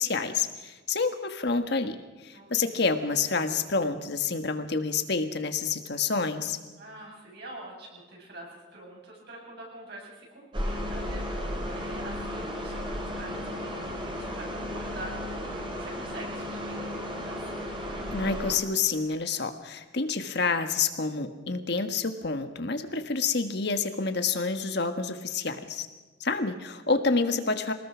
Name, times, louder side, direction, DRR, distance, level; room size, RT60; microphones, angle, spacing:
voice 1, 0.0-6.6 18.1-25.9 26.2-27.7, left 4 dB, 55° left, 7 dB, 1.4 m, -28 dB
voice 2, 2.3-2.8 6.8-17.5 27.0-27.1, right 2 dB, 55° right, -2 dB, 7.9 m, -45 dB
sound 1, 10.5-18.6, equal, 25° right, 3.2 m, -34 dB
24.0 x 19.5 x 6.2 m, 1.2 s
head